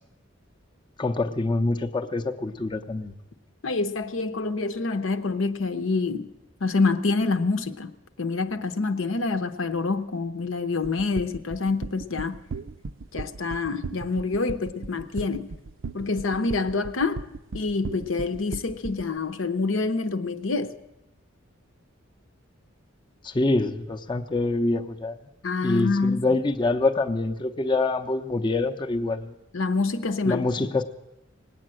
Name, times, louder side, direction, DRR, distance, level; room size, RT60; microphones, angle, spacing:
voice 1, 1.0-3.1 23.2-25.2 25.6-29.3 30.3-30.8, left 2 dB, 25° left, 0.6 m, -25 dB
voice 2, 3.6-6.3 6.6-7.9 8.2-12.4 13.1-15.5 15.9-17.2 17.5-20.7 25.4-26.4 29.5-30.7, left 3 dB, 75° left, 0.8 m, -26 dB
sound 1, 10.8-19.1, right 3 dB, 70° right, 0.5 m, -36 dB
19.0 x 8.8 x 7.6 m
head